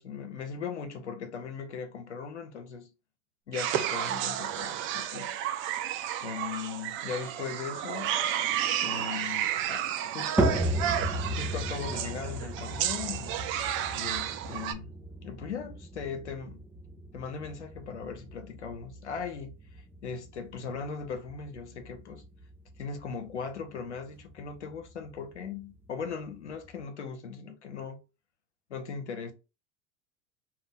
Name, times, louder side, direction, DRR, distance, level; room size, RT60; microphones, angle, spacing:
voice 1, 0.0-2.9 3.5-5.4 6.2-8.2 8.8-9.9 10.1-10.7 11.4-13.4 13.9-14.9 15.2-16.6 17.1-22.2 22.8-28.0 28.7-29.3, left 6 dB, 85° left, 0.6 m, -39 dB
sound 1, 3.5-14.7, right 11 dB, 35° right, 0.4 m, -32 dB
sound 2, 10.4-26.8, equal, 5° right, 0.7 m, -36 dB
2.7 x 2.2 x 3.5 m
hypercardioid pair, 80°, 34 cm